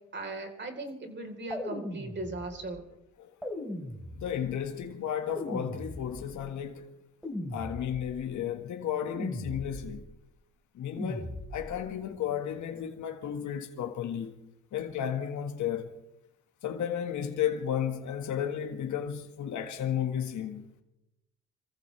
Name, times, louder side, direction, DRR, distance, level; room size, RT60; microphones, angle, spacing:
voice 1, 0.1-2.8, right 2 dB, 35° right, 4.1 m, -38 dB
sound 1, 1.5-2.7 3.4-4.6 5.3-6.5 7.2-8.3 9.1-10.1 11.0-11.9, left 1 dB, ahead, 4.3 m, -38 dB
voice 2, 4.1-6.8 7.5-10.0 10.7-14.3 14.7-15.9 16.6-20.6, left 9 dB, 75° left, 1.8 m, -33 dB
27.0 x 15.0 x 3.4 m
cardioid pair, 90°, 30 cm